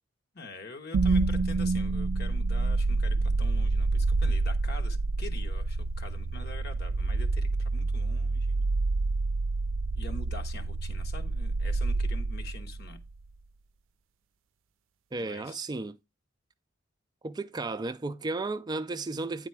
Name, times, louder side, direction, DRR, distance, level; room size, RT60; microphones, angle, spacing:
voice 1, 0.3-8.8 9.9-13.0 15.2-15.6, left 2 dB, 55° left, 1.3 m, -45 dB
sound 1, 0.9-13.0, right 3 dB, 85° right, 0.4 m, -28 dB
voice 2, 15.1-16.0 17.2-19.5, right 3 dB, 20° right, 0.4 m, -34 dB
9.6 x 4.1 x 4.6 m
head